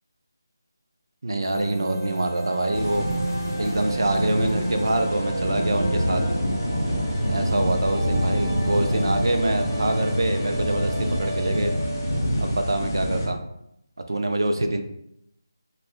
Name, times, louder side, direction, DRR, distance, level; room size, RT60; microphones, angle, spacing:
voice 1, 1.2-3.1 3.6-6.2 7.3-11.7 12.4-13.4 14.1-14.8, right 1 dB, 75° right, 6 dB, 0.4 m, -25 dB
sound 1, 1.4-12.2, right 1 dB, ahead, 0.7 m, -32 dB
sound 2, 2.7-13.3, equal, 35° left, 0.7 m, -26 dB
2.4 x 2.1 x 3.5 m, 0.78 s
figure-of-eight pair, 175°, 2 cm